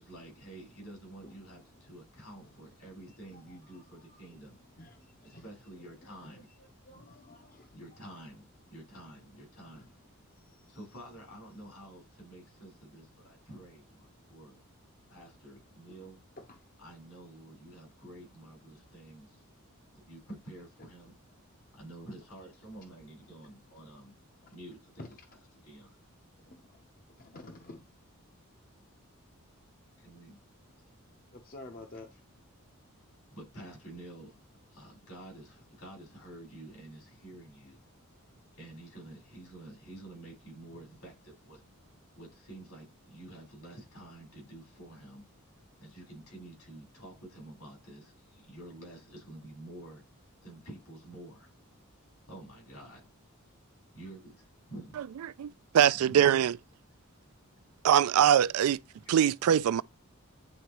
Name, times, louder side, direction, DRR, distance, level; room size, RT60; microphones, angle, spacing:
voice 1, 0.0-4.6 5.2-6.5 7.7-9.9 10.7-14.6 15.1-16.2 16.8-19.4 20.0-21.1 21.7-24.2 24.5-25.0 25.6-26.0 30.0-30.4 33.3-34.4 34.7-37.8 38.6-41.6 42.2-45.3 45.8-50.0 50.4-51.5 52.3-53.1 53.9-55.0 55.8-56.3, right 1 dB, 80° left, 4.6 m, -49 dB
voice 2, 1.2-1.6 2.4-2.7 3.1-5.4 6.0-8.0 9.7-9.9 10.2-10.8 14.1-14.3 15.8-16.0 16.4-16.8 19.4-19.5 20.8-20.9 24.4-24.6 25.0-25.1 26.5-26.9 27.2-27.9 31.3-32.1, left 2 dB, 40° left, 0.7 m, -52 dB
voice 3, 55.7-56.6 57.8-58.8 59.1-59.8, right 9 dB, 80° right, 0.3 m, -22 dB
9.2 x 3.9 x 2.9 m
head